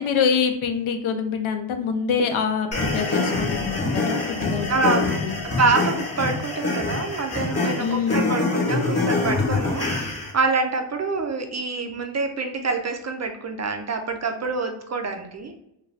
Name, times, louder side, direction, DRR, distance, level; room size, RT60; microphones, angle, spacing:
voice 1, 0.0-5.4 7.8-8.4, left 6 dB, 80° left, 6 dB, 0.5 m, -25 dB
sound 1, 2.7-10.3, left 3 dB, 30° left, 0.9 m, -25 dB
voice 2, 4.7-5.0 5.6-15.5, right 3 dB, 35° right, 5 dB, 0.4 m, -26 dB
2.5 x 2.2 x 3.2 m, 0.81 s
cardioid pair, 80°, 48 cm